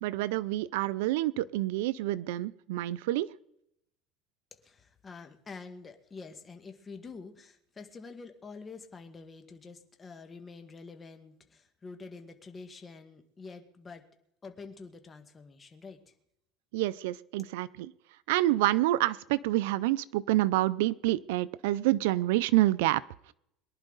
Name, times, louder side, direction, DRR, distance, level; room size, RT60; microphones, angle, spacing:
voice 1, 0.0-3.3 16.7-17.9 18.3-23.0, right 16 dB, 85° right, 16 dB, 0.5 m, -27 dB
voice 2, 4.6-14.0 14.4-16.1, left 4 dB, 20° left, 6 dB, 1.7 m, -47 dB
23.0 x 11.0 x 4.0 m, 0.78 s
supercardioid pair, 125°, 0 cm